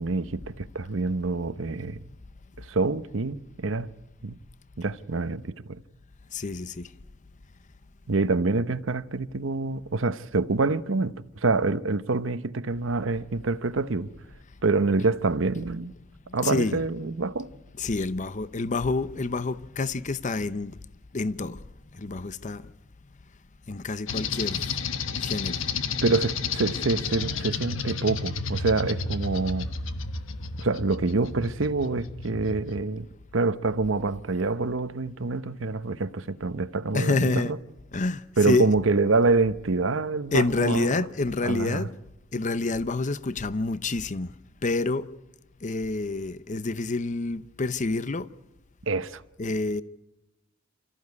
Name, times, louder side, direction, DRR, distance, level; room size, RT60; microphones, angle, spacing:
voice 1, 0.0-2.0 2.6-3.9 4.2-4.4 4.8-5.8 8.1-11.1 11.4-14.1 14.6-15.9 16.3-17.5 26.0-29.7 30.6-33.1 33.3-37.6 38.4-40.9 41.4-41.9 48.9-49.2, right 3 dB, 75° right, 0.9 m, -26 dB
voice 2, 6.3-6.9 15.8-15.9 16.3-16.8 17.7-20.8 21.1-21.6 21.9-22.7 23.7-24.8 25.2-25.6 36.9-37.5 37.9-38.7 40.3-41.9 42.3-44.3 44.6-45.1 45.6-48.3 49.4-49.8, left 3 dB, 40° left, 0.7 m, -28 dB
sound 1, 24.1-32.8, left 5 dB, 85° left, 1.3 m, -32 dB
28.5 x 14.0 x 9.6 m
head